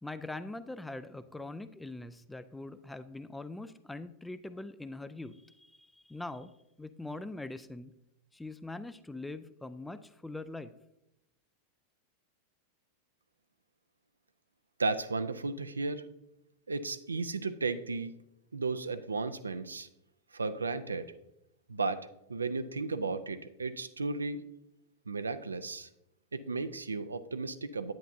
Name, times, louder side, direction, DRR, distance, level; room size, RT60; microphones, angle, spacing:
voice 1, 0.0-6.5 6.8-7.9 8.3-10.7, left 2 dB, 5° left, 13 dB, 0.4 m, -42 dB
voice 2, 14.8-16.0 16.7-18.2 18.5-19.9 20.3-21.1 21.7-24.4 25.1-25.9 26.3-27.9, right 3 dB, 75° right, 11 dB, 0.5 m, -34 dB
10.5 x 9.0 x 2.6 m, 0.85 s
figure-of-eight pair, 90°, 0 cm